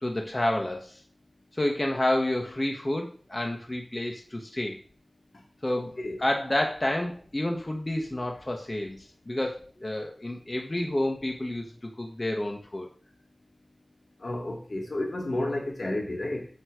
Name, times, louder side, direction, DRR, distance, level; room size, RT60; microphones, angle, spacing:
voice 1, 0.0-1.0 1.5-4.8 5.6-12.9, left 1 dB, 35° left, 1.2 m, -29 dB
voice 2, 5.7-6.2 14.2-16.5, left 1 dB, 70° left, 1.5 m, -32 dB
7.9 x 3.2 x 4.7 m
wide cardioid pair, 50°, 0 cm